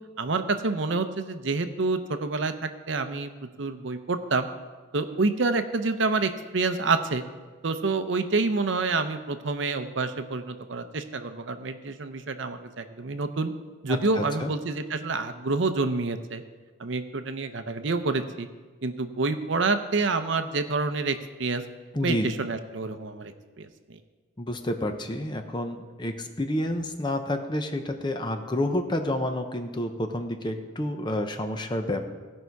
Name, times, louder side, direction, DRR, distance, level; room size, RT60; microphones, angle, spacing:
voice 1, 0.2-4.5 4.9-7.2 7.6-13.5 13.8-16.4 16.8-18.5 18.8-21.6 22.0-23.7, right 3 dB, 65° right, 9 dB, 0.7 m, -28 dB
voice 2, 13.9-14.5 21.9-22.4 24.4-32.0, left 1 dB, 20° left, 6 dB, 0.7 m, -29 dB
16.5 x 5.6 x 4.6 m, 1.4 s
head